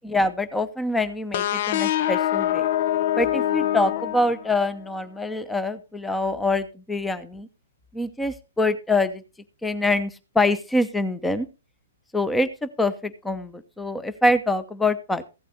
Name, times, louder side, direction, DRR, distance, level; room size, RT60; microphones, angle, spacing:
voice 1, 0.0-2.6 3.2-7.5 7.9-9.2 9.6-11.5 12.1-15.2, left 2 dB, 5° left, 14 dB, 0.8 m, -25 dB
sound 1, 1.3-4.9, left 12 dB, 50° left, 0.5 m, -25 dB
15.0 x 8.4 x 4.1 m, 0.30 s
figure-of-eight pair, 120°, 0 cm